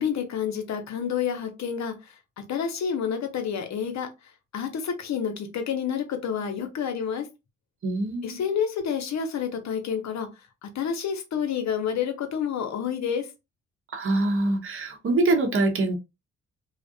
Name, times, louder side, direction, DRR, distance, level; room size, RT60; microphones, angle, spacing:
voice 1, 0.0-2.1 2.5-4.1 4.5-7.3 8.2-10.3 10.6-13.3, left 7 dB, 65° left, 0.7 m, -29 dB
voice 2, 7.8-8.4 13.9-16.0, right 2 dB, 45° right, 0.8 m, -24 dB
2.4 x 2.0 x 2.6 m
supercardioid pair, 55°, 29 cm